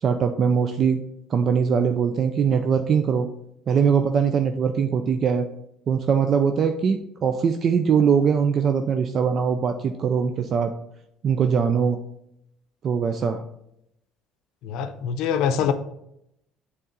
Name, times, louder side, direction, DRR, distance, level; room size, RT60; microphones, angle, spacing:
voice 1, 0.0-1.0 1.3-3.3 3.7-5.5 5.9-10.7 11.2-12.0 12.8-13.4, right 6 dB, 45° right, 7 dB, 0.4 m, -21 dB
voice 2, 14.6-15.7, left 8 dB, 75° left, 10 dB, 0.6 m, -24 dB
6.8 x 3.6 x 3.9 m, 0.78 s
cardioid pair, 125°, 0 cm